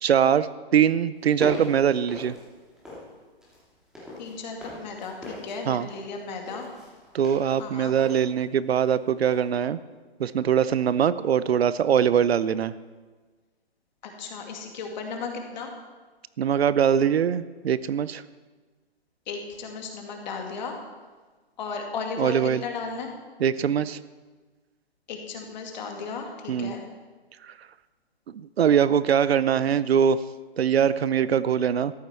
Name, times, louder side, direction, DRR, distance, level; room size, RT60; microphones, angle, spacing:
voice 1, 0.0-2.4 5.7-5.9 7.1-9.8 10.2-12.7 16.4-18.2 22.2-22.6 23.4-24.0 26.5-26.8 28.3-30.2 30.6-31.9, right 8 dB, 75° right, 17 dB, 0.7 m, -22 dB
sound 1, 1.2-3.1 3.4-9.0 9.2-9.5, left 1 dB, ahead, 2.9 m, -39 dB
voice 2, 4.2-6.7 7.6-7.9 14.0-15.7 19.3-20.8 21.6-23.1 25.1-26.8, left 5 dB, 45° left, 2 dB, 2.4 m, -35 dB
13.5 x 11.0 x 4.5 m, 1.3 s
hypercardioid pair, 150°, 31 cm